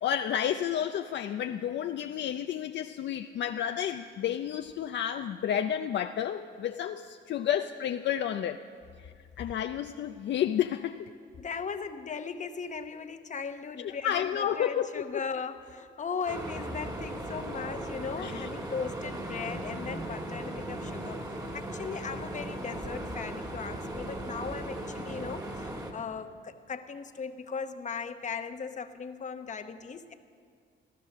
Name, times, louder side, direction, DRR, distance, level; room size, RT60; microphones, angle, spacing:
voice 1, 0.0-8.6 9.0-11.1 13.8-15.2 18.2-18.4, left 10 dB, 65° left, 7 dB, 0.5 m, -31 dB
voice 2, 11.4-21.2 21.5-30.1, left 5 dB, 40° left, 9 dB, 1.0 m, -38 dB
sound 1, 16.3-25.9, right 1 dB, 20° right, 2.0 m, -37 dB
16.5 x 12.0 x 6.6 m, 2.1 s
cardioid pair, 90°, 20 cm